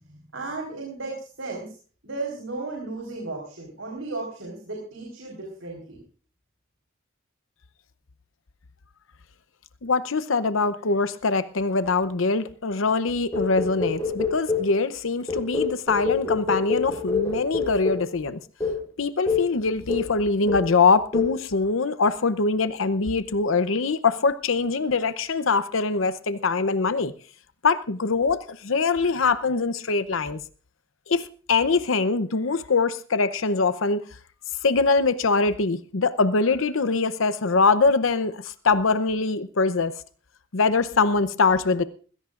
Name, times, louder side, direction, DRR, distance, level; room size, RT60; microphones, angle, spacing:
voice 1, 0.1-1.7 2.0-6.0, right 3 dB, 75° right, -1 dB, 4.3 m, -35 dB
voice 2, 9.8-18.4 19.0-27.1 27.6-30.4 31.1-34.0 34.6-40.0 40.5-41.8, left 4 dB, 80° left, 13 dB, 0.8 m, -23 dB
sound 1, 13.3-14.8 15.3-18.1 18.6-18.8 19.3-19.5 19.9-20.2 20.5-20.8 21.1-21.4, left 4 dB, 15° left, 7.6 m, -27 dB
20.5 x 16.5 x 2.5 m, 0.41 s
head